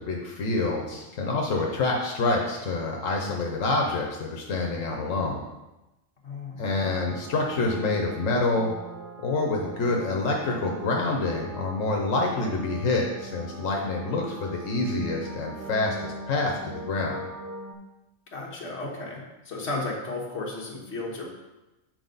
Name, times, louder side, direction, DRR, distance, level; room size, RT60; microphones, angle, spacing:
voice 1, 0.0-5.4 6.6-8.7 9.2-17.3, left 3 dB, 90° left, 0 dB, 1.3 m, -27 dB
voice 2, 6.2-6.6 18.3-21.3, left 2 dB, 60° left, -2 dB, 1.6 m, -34 dB
sound 1, 6.8-17.7, right 2 dB, 25° right, 0.4 m, -41 dB
7.9 x 4.5 x 3.9 m, 1.0 s
omnidirectional pair, 1.3 m